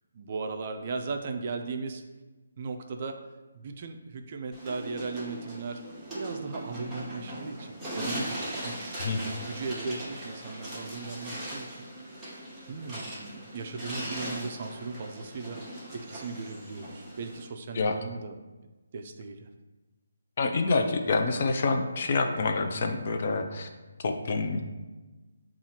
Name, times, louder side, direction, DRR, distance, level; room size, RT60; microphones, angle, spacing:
voice 1, 0.1-2.0 2.6-3.2 3.5-5.8 6.1-11.9 12.7-15.6 15.9-18.4 18.9-19.5, right 4 dB, 35° right, 5 dB, 0.3 m, -37 dB
sound 1, 4.5-17.5, right 1 dB, 5° right, 0.9 m, -39 dB
voice 2, 20.4-23.7 24.0-24.6, left 3 dB, 40° left, 5 dB, 0.4 m, -27 dB
7.2 x 2.4 x 2.8 m, 1.2 s
hypercardioid pair, 165°, 0 cm